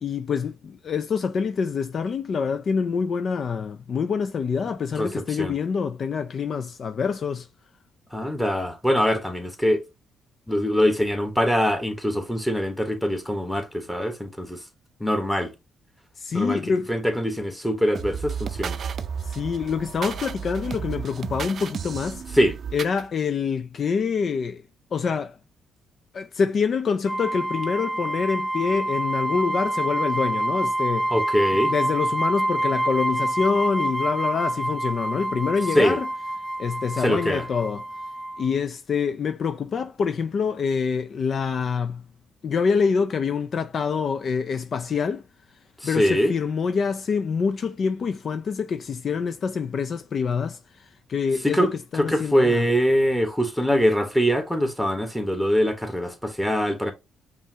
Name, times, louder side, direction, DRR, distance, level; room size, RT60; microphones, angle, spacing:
voice 1, 0.0-7.5 16.2-16.9 19.2-22.2 22.7-24.6 24.9-25.4 26.1-31.1 31.7-36.1 36.6-37.8 38.4-42.0 42.4-45.2 45.8-52.7, left 5 dB, 50° left, 0.4 m, -26 dB
voice 2, 5.0-5.6 8.1-9.8 10.5-14.6 15.0-15.5 16.3-16.6 16.9-18.8 22.3-22.6 31.1-31.7 35.7-36.0 37.0-37.5 45.8-46.3 51.4-51.7 52.0-56.9, equal, 5° left, 1.1 m, -23 dB
sound 1, 18.0-23.0, right 7 dB, 55° right, 0.4 m, -33 dB
sound 2, 27.1-38.5, right 1 dB, 20° left, 0.8 m, -27 dB
5.4 x 2.5 x 2.8 m
cardioid pair, 90°, 0 cm